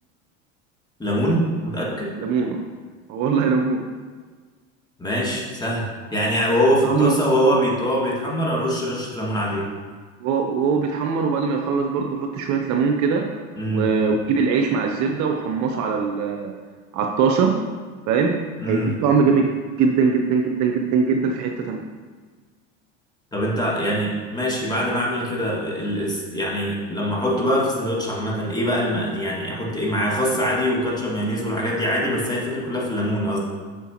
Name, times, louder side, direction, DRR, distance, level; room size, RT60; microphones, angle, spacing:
voice 1, 1.0-2.1 5.0-5.8 6.1-9.7 13.6-13.9 18.6-18.9 23.3-33.4, equal, 10° left, -3 dB, 2.0 m, -23 dB
voice 2, 2.2-2.6 3.1-3.8 6.8-7.1 10.2-13.3 13.7-16.5 16.9-17.5 18.1-18.3 18.6-19.4 19.8-21.8, right 5 dB, 50° right, 3 dB, 0.7 m, -21 dB
8.1 x 6.4 x 2.9 m, 1.5 s
hypercardioid pair, 85°, 39 cm